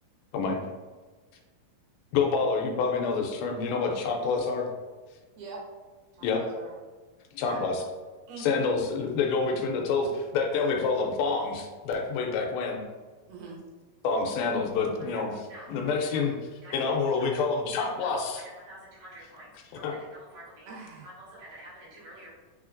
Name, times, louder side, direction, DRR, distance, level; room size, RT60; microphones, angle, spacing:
voice 1, 2.1-4.7 6.2-6.4 7.3-7.8 8.4-12.8 14.0-15.3 15.7-16.3 16.7-18.4 19.8-19.9, left 4 dB, 80° left, 2 dB, 2.5 m, -27 dB
voice 2, 6.1-6.8 7.5-7.8 8.3-8.7 13.3-13.6 20.7-21.1, right 3 dB, 90° right, -3 dB, 3.0 m, -43 dB
voice 3, 15.1-16.3 16.6-17.3 17.7-20.7 21.0-22.3, right 1 dB, 70° right, -8 dB, 3.2 m, -49 dB
6.3 x 3.4 x 2.5 m, 1.4 s
omnidirectional pair, 4.2 m